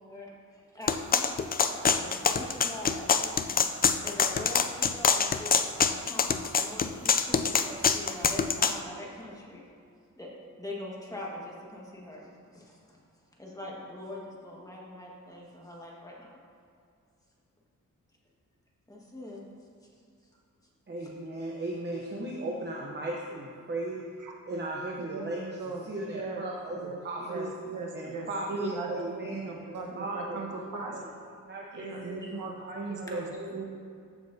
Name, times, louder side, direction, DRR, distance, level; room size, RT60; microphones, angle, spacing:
voice 1, 0.0-3.6 4.0-9.6 10.2-12.3 12.5-13.0 13.4-16.4 18.9-19.4 33.1-33.3, left 1 dB, 10° left, -4 dB, 1.6 m, -43 dB
sound 1, 0.9-8.8, left 6 dB, 30° left, 0.3 m, -25 dB
voice 2, 20.9-24.0 24.5-27.5 27.9-29.5 30.0-33.6, right 1 dB, 35° right, -2 dB, 0.9 m, -37 dB
voice 3, 25.0-26.4 26.7-31.0 31.7-33.6, right 4 dB, 70° right, -1 dB, 1.3 m, -39 dB
14.5 x 6.1 x 2.8 m, 2.3 s
wide cardioid pair, 120°, 32 cm